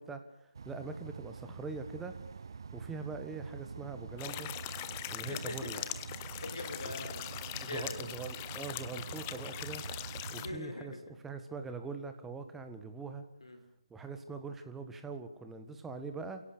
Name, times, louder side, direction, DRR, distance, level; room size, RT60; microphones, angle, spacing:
voice 1, 0.0-2.2 2.7-4.5 5.1-5.8 6.9-7.0 7.6-9.8 10.3-13.3 13.9-16.4, right 4 dB, 5° right, 8 dB, 1.7 m, -43 dB
sound 1, 0.5-10.6, right 5 dB, 50° right, 0.8 m, -46 dB
sound 2, 4.2-10.5, left 14 dB, 20° left, 0.9 m, -42 dB
voice 2, 5.2-5.9 6.1-7.4 7.7-8.0 10.3-11.2 13.4-13.6, left 2 dB, 65° left, 7 dB, 4.5 m, -42 dB
28.5 x 17.0 x 6.9 m, 0.77 s
figure-of-eight pair, 150°, 3 cm